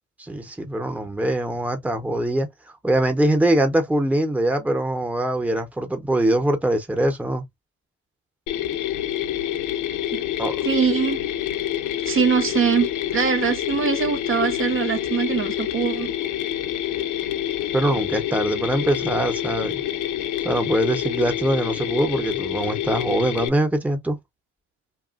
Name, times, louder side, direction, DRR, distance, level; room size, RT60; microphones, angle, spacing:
voice 1, 0.2-2.5 2.8-7.4 10.4-10.6 17.7-19.8 20.4-24.2, right 1 dB, 5° right, 0.8 m, -23 dB
Mechanisms, 8.5-23.5, left 12 dB, 80° left, 0.5 m, -27 dB
voice 2, 10.6-11.2 12.0-16.1, right 7 dB, 45° right, 0.7 m, -22 dB
2.8 x 2.4 x 2.4 m
cardioid pair, 90°, 30 cm